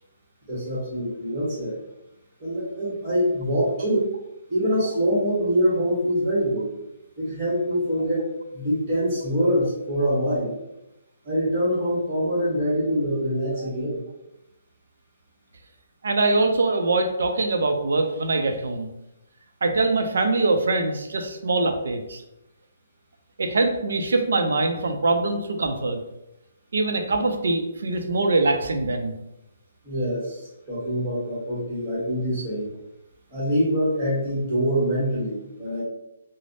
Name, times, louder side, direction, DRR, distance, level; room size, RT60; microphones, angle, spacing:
voice 1, 0.5-1.8 2.4-4.1 4.5-6.7 7.2-10.5 11.2-14.0 29.8-32.7 33.3-35.8, equal, 20° right, -7 dB, 1.1 m, -24 dB
voice 2, 16.0-18.9 19.6-22.2 23.4-26.0 26.7-29.1, right 2 dB, 75° right, 5 dB, 0.4 m, -23 dB
3.2 x 2.0 x 2.5 m, 0.88 s
hypercardioid pair, 170°, 0 cm